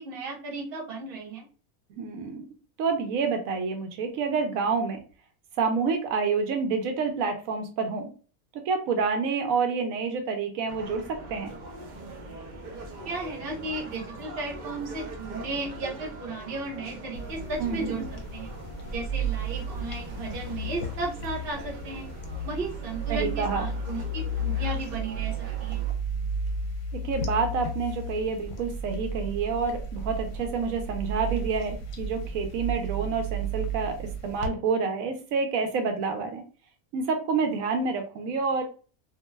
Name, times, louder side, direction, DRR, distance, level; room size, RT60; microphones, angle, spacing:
voice 1, 0.0-1.5 13.0-18.5 18.9-22.1 22.4-25.8, right 3 dB, 45° right, -2 dB, 1.0 m, -35 dB
voice 2, 1.9-2.5 2.8-5.0 5.6-8.1 8.5-11.5 17.6-17.9 23.1-23.7 27.0-36.4 36.9-38.6, right 5 dB, 85° right, 5 dB, 1.0 m, -28 dB
sound 1, 10.7-25.9, right 2 dB, 65° right, 0.4 m, -42 dB
sound 2, 17.1-34.5, right 2 dB, 70° left, 0.9 m, -33 dB
2.6 x 2.2 x 3.0 m, 0.38 s
omnidirectional pair, 1.4 m